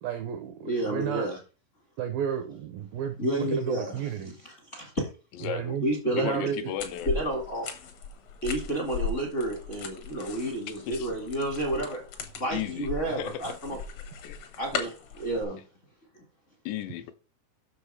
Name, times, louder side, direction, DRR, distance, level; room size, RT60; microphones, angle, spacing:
voice 1, 0.0-1.3 2.0-4.3 5.4-6.7, right 9 dB, 90° right, 2.0 m, -32 dB
voice 2, 0.7-1.4 3.2-5.1 5.8-6.4 7.0-7.7 8.4-12.1 12.4-13.8 14.6-15.6 16.1-16.2, right 1 dB, 55° left, 0.8 m, -30 dB
voice 3, 5.3-5.8 6.2-7.1 10.9-11.1 12.5-13.5 14.2-14.5 16.7-17.1, left 10 dB, 85° left, 3.0 m, -35 dB
sound 1, 6.8-15.4, left 5 dB, 70° left, 1.6 m, -38 dB
7.1 x 6.3 x 4.9 m
omnidirectional pair, 5.1 m